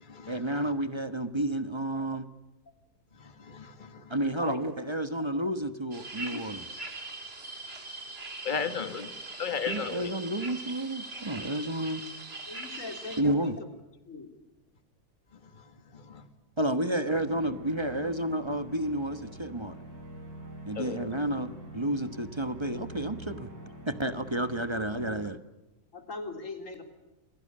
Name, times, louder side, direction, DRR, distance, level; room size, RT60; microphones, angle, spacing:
voice 1, 0.3-2.3 4.1-6.7 9.7-12.0 13.2-13.5 16.6-19.8 20.7-23.5 23.9-25.4, right 1 dB, 20° right, 11 dB, 1.2 m, -31 dB
voice 2, 3.5-3.9 6.3-6.4 8.4-9.1 9.4-10.1 16.1-16.2 20.8-21.1, left 6 dB, 30° left, 9 dB, 1.9 m, -34 dB
voice 3, 4.2-4.6 12.5-13.5 14.1-14.3 16.9-17.2 18.0-18.1 25.9-26.8, left 3 dB, 55° left, 6 dB, 3.9 m, -41 dB
sound 1, 5.9-13.2, right 2 dB, 40° right, 2.8 m, -41 dB
sound 2, 17.1-25.2, right 1 dB, 80° right, 5.4 m, -45 dB
28.5 x 22.0 x 8.7 m, 1.0 s
omnidirectional pair, 1.6 m